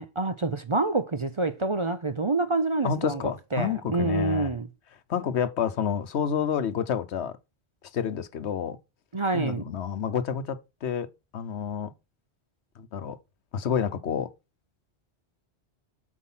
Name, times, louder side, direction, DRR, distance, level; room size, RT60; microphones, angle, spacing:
voice 1, 0.0-3.2 3.5-4.7 9.1-9.6, right 3 dB, 35° right, 0.6 m, -27 dB
voice 2, 2.8-4.6 5.1-7.3 7.9-8.8 9.3-11.1 11.3-11.9 12.9-13.2 13.5-14.3, left 8 dB, 80° left, 1.1 m, -29 dB
8.3 x 4.8 x 5.6 m
omnidirectional pair, 1.1 m